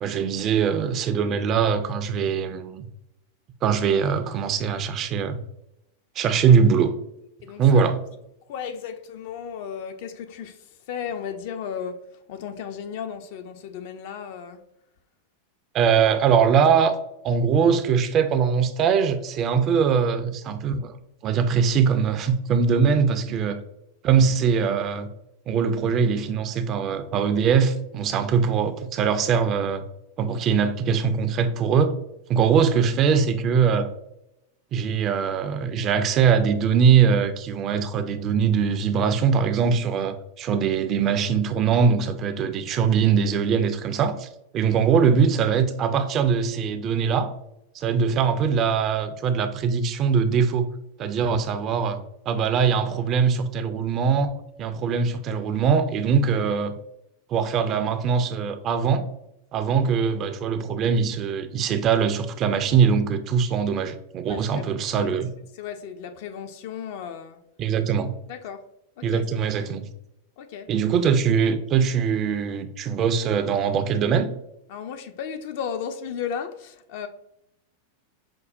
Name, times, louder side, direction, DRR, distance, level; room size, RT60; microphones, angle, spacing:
voice 1, 0.0-2.9 3.6-5.4 6.2-7.0 7.6-8.0 15.7-16.9 17.2-21.0 21.2-23.6 24.0-25.1 25.5-29.8 30.2-31.9 32.3-33.9 34.7-44.3 44.5-47.3 47.7-50.7 51.0-52.0 52.3-56.7 57.3-59.0 59.5-65.3 67.6-68.1 69.0-69.9 70.7-74.3, right 6 dB, 35° right, 0.3 m, -22 dB
voice 2, 7.4-7.9 8.5-14.6 23.3-23.4 64.3-64.7 64.9-65.3 65.5-67.4 68.3-68.6 69.0-69.6 70.4-70.7 74.7-77.1, left 7 dB, 50° left, 0.4 m, -35 dB
5.2 x 2.0 x 2.5 m
figure-of-eight pair, 90°, 0 cm